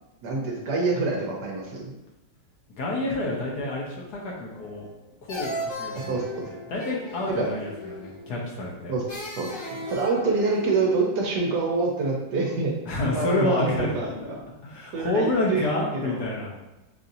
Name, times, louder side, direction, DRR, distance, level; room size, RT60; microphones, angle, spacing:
voice 1, 0.2-1.9 6.1-6.5 7.4-7.5 8.9-9.0 9.4-9.5 9.9-12.8 13.1-14.4 14.9-16.2, right 3 dB, 70° right, -1 dB, 1.2 m, -26 dB
voice 2, 2.8-4.9 5.2-8.9 12.9-14.3 14.6-16.5, left 2 dB, 65° left, -3 dB, 1.2 m, -29 dB
sound 1, 4.5-5.0 5.3-8.4 9.1-10.9, left 1 dB, 90° left, 1.8 m, -36 dB
5.7 x 2.6 x 2.6 m, 1.0 s
omnidirectional pair, 2.0 m